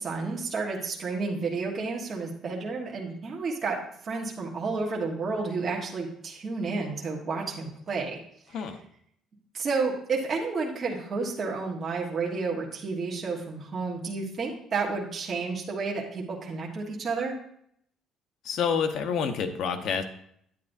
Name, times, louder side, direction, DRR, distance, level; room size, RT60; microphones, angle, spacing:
voice 1, 0.0-3.8 4.0-8.2 9.5-17.4, right 4 dB, 30° right, -2 dB, 1.3 m, -31 dB
voice 2, 18.4-20.0, left 6 dB, 60° left, 6 dB, 0.9 m, -28 dB
9.5 x 9.3 x 2.7 m, 0.68 s
cardioid pair, 160°, 0 cm